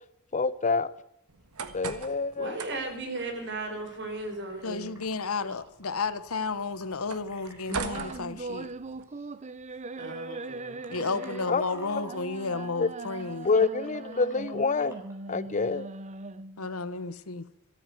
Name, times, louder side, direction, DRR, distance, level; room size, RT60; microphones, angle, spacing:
voice 1, 0.3-0.9 1.7-2.6 11.5-11.6 12.8-12.9 13.4-15.0 15.3-15.9, left 4 dB, 35° left, 0.7 m, -26 dB
sound 1, 1.3-9.0, right 4 dB, 85° right, 1.6 m, -42 dB
voice 2, 2.4-5.0 9.9-11.1, right 2 dB, 55° right, 4.3 m, -36 dB
sound 2, 2.6-8.1 9.1-9.3 9.6-9.8 10.4-15.2, equal, 10° right, 4.3 m, -52 dB
voice 3, 4.6-8.7 10.9-13.5 16.6-17.5, left 4 dB, 70° left, 1.0 m, -32 dB
sound 3, 7.7-16.7, right 3 dB, 30° right, 0.6 m, -40 dB
13.5 x 13.5 x 7.8 m
head